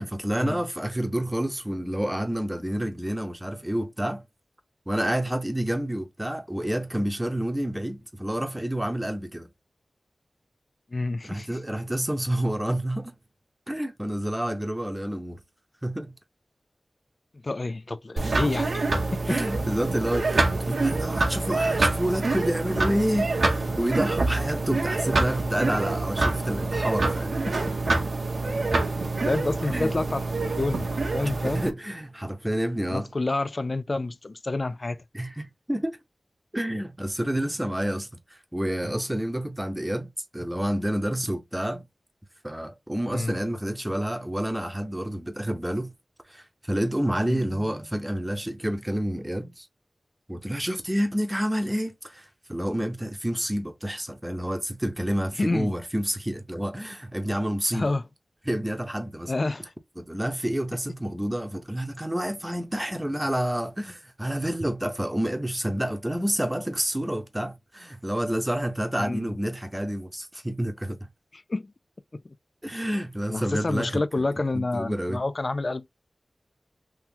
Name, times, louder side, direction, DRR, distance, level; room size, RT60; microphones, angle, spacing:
voice 1, 0.0-4.2 4.9-9.5 11.2-13.1 13.7-15.4 15.8-16.1 19.3-27.4 29.7-29.9 31.2-33.1 35.1-36.0 36.5-38.1 38.5-41.8 42.4-45.9 46.3-49.7 50.3-57.9 58.5-59.3 60.0-71.0 72.6-74.0 74.5-75.2, right 1 dB, 10° right, 0.9 m, -29 dB
voice 2, 10.9-11.6 17.3-18.8 19.1-19.4 27.5-27.6 29.2-30.2 30.6-31.6 32.9-35.0 43.1-43.4 47.2-47.4 55.4-55.7 57.7-58.0 59.3-59.7 69.0-69.3 71.3-71.7 72.2-72.3 73.3-75.9, left 2 dB, 50° left, 0.3 m, -29 dB
sound 1, 18.2-31.7, right 3 dB, 75° right, 0.9 m, -26 dB
3.8 x 2.9 x 2.8 m
wide cardioid pair, 60°, 0 cm